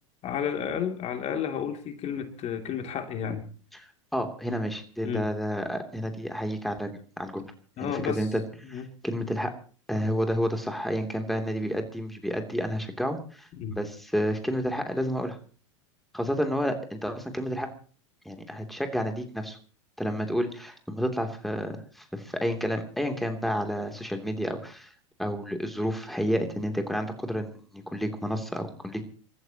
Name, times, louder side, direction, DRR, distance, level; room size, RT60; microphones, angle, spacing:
voice 1, 0.2-3.4 5.0-5.3 7.8-8.3 8.6-8.8 13.6-13.8, left 8 dB, 40° left, 5 dB, 2.9 m, -31 dB
voice 2, 3.8-7.4 7.8-8.4 8.7-9.5 9.9-15.4 16.1-17.7 18.2-19.6 20.0-24.9 25.2-29.0, equal, ahead, 5 dB, 3.0 m, -30 dB
29.0 x 14.5 x 3.0 m, 0.41 s
hypercardioid pair, 90°, 16 cm